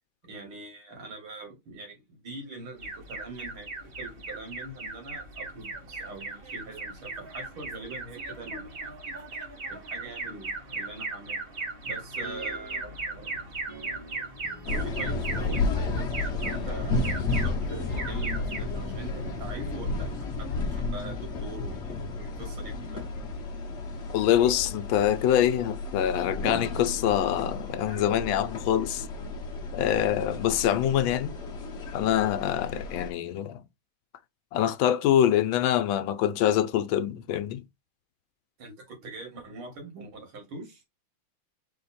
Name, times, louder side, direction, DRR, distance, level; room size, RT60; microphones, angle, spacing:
voice 1, 0.2-8.9 9.7-11.4 11.9-13.4 14.6-16.1 16.3-23.1 38.6-40.8, right 2 dB, 80° right, 2.7 m, -43 dB
Alarm, 2.8-20.4, right 3 dB, 35° right, 1.0 m, -38 dB
sound 1, 12.2-13.0 13.7-15.3 16.3-20.5 20.8-20.9, equal, 10° left, 1.2 m, -48 dB
sound 2, 14.6-33.1, left 3 dB, 50° left, 0.8 m, -32 dB
voice 2, 24.1-29.1 29.7-31.3 31.9-33.6 34.5-37.6, left 11 dB, 75° left, 1.3 m, -25 dB
4.5 x 2.8 x 4.1 m
omnidirectional pair, 2.3 m